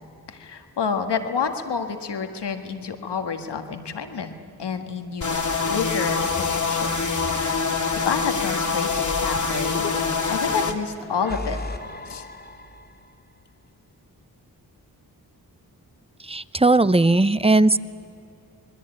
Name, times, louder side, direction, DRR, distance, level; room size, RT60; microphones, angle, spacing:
voice 1, 0.3-7.1 7.5-9.9 10.3-11.6 12.1-12.3, left 6 dB, 80° left, 6 dB, 1.8 m, -29 dB
sound 1, 5.2-10.7, left 4 dB, 45° left, 2.2 m, -25 dB
sound 2, 6.2-8.0 8.9-10.4 11.0-13.2, left 2 dB, 25° left, 2.2 m, -37 dB
voice 2, 16.2-17.8, right 2 dB, 15° right, 16 dB, 0.7 m, -18 dB
27.0 x 20.5 x 8.9 m, 2.5 s
cardioid pair, 45°, 40 cm